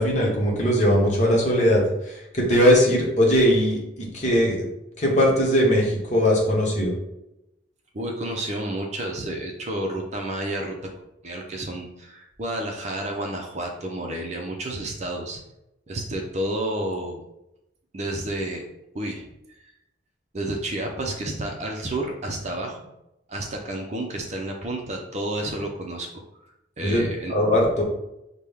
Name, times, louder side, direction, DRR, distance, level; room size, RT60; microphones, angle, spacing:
voice 1, 0.0-1.8 2.3-4.7 5.0-6.9 26.8-27.8, equal, 40° left, -2 dB, 1.1 m, -20 dB
voice 2, 7.9-10.8 11.2-15.4 15.9-17.2 17.9-18.7 18.9-19.3 20.3-22.8 23.3-26.2 26.8-27.3, right 1 dB, 35° right, 1 dB, 0.6 m, -30 dB
5.9 x 2.2 x 3.5 m, 0.88 s
head